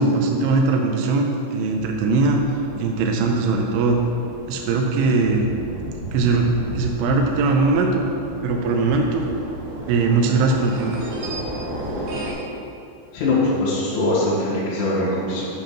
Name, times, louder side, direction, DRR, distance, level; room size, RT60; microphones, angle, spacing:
voice 1, 0.0-2.4 2.8-4.0 4.5-5.5 6.1-6.5 6.8-8.0 8.4-9.3 9.9-11.0, right 3 dB, 85° right, 1 dB, 3.1 m, -20 dB
sound 1, 1.6-12.3, right 1 dB, 60° right, 2.2 m, -34 dB
voice 2, 13.1-15.5, left 2 dB, 80° left, -11 dB, 4.5 m, -22 dB
10.5 x 5.1 x 5.8 m, 2.6 s
omnidirectional pair, 5.6 m